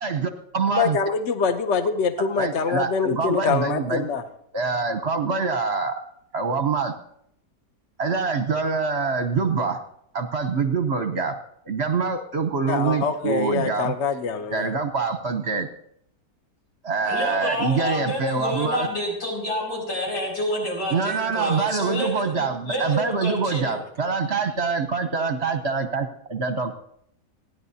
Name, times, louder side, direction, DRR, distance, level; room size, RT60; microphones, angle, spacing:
voice 1, 0.0-1.0 2.4-4.1 4.5-6.0 6.3-6.9 8.0-9.8 10.1-11.4 11.6-13.9 14.5-15.7 16.8-18.9 20.9-26.8, right 4 dB, 50° right, 8 dB, 0.9 m, -25 dB
voice 2, 0.7-4.2 12.7-14.7, left 5 dB, 50° left, 8 dB, 1.0 m, -24 dB
voice 3, 17.1-23.8, left 1 dB, 85° left, -3 dB, 6.4 m, -28 dB
29.5 x 10.5 x 2.8 m, 0.72 s
omnidirectional pair, 1.8 m